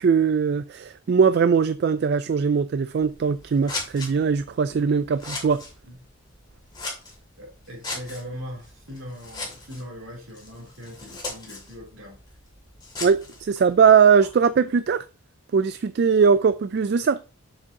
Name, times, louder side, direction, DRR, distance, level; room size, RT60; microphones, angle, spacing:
voice 1, 0.0-5.6 13.0-15.0 15.5-17.2, right 6 dB, 50° right, 0.3 m, -20 dB
Scissors, 2.9-14.4, left 3 dB, 20° left, 2.4 m, -39 dB
voice 2, 7.4-12.2, equal, 70° right, 3.3 m, -40 dB
7.1 x 7.1 x 2.8 m
head